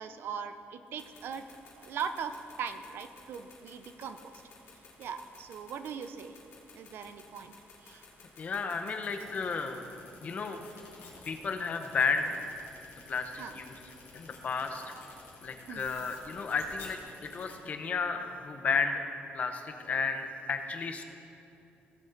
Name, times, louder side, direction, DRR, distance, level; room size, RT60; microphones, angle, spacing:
voice 1, 0.0-1.4 1.8-4.4 5.0-6.4 6.7-7.5 7.8-8.0 13.4-13.5 15.7-15.9, right 7 dB, 65° right, 10 dB, 0.5 m, -40 dB
sound 1, 0.9-17.5, left 4 dB, 80° left, 2.6 m, -52 dB
voice 2, 8.4-9.8 10.2-10.7 11.2-12.4 13.1-14.9 15.4-19.0 19.3-21.0, left 5 dB, 35° left, 6 dB, 0.7 m, -33 dB
17.0 x 6.5 x 3.9 m, 2.8 s
cardioid pair, 170°, 4 cm